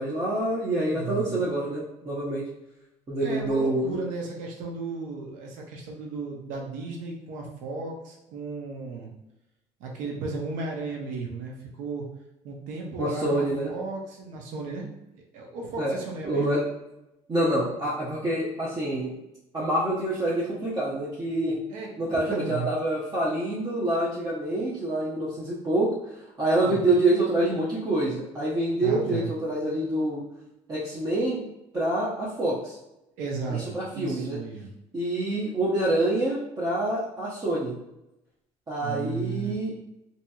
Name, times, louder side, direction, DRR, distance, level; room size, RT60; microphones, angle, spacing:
voice 1, 0.0-2.4 3.1-4.0 13.0-13.7 15.8-16.0 16.2-16.6 17.3-19.1 19.5-21.6 22.0-25.9 26.4-30.2 30.7-32.8 33.5-34.4 34.9-37.8 38.7-39.7, right 1 dB, 30° right, -7 dB, 0.7 m, -26 dB
voice 2, 0.9-1.5 3.2-9.1 9.8-12.1 12.4-14.9 15.3-16.6 21.7-22.7 26.6-26.9 28.8-29.3 33.2-34.7 38.8-39.5, right 4 dB, 80° right, 0 dB, 0.7 m, -35 dB
2.8 x 2.7 x 2.3 m, 0.92 s
cardioid pair, 100°, 13 cm